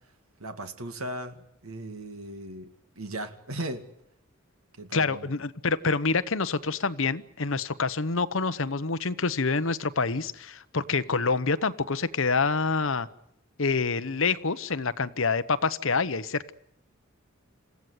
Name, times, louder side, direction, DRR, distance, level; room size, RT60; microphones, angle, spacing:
voice 1, 0.4-1.4 1.6-3.8 4.8-5.3, right 1 dB, 85° right, 2.3 m, -37 dB
voice 2, 4.9-13.1 13.6-16.5, left 4 dB, 65° left, 1.0 m, -27 dB
28.0 x 16.0 x 9.5 m
head